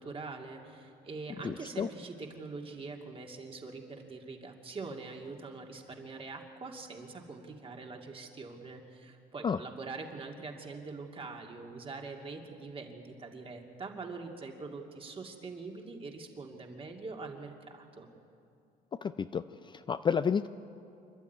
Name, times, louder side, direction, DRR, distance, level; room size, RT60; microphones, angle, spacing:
voice 1, 0.0-18.1, right 3 dB, 35° right, 2 dB, 2.6 m, -44 dB
voice 2, 1.4-1.9 9.4-9.6 19.0-19.4 19.7-20.5, left 6 dB, 30° left, 12 dB, 0.4 m, -30 dB
26.5 x 12.0 x 9.4 m, 2.6 s
cardioid pair, 110°, 17 cm